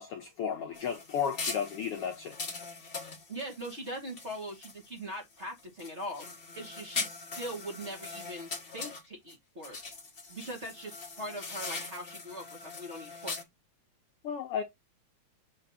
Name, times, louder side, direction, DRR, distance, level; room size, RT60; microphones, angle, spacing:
voice 1, 0.0-2.3 14.2-14.6, left 7 dB, 70° left, 1.4 m, -33 dB
sound 1, 0.7-5.0 5.4-9.3 9.6-13.4, left 4 dB, 40° left, 0.8 m, -41 dB
voice 2, 3.3-6.2 6.5-9.8 10.3-13.3, right 1 dB, 25° right, 2.1 m, -41 dB
7.6 x 3.5 x 4.1 m
omnidirectional pair, 3.5 m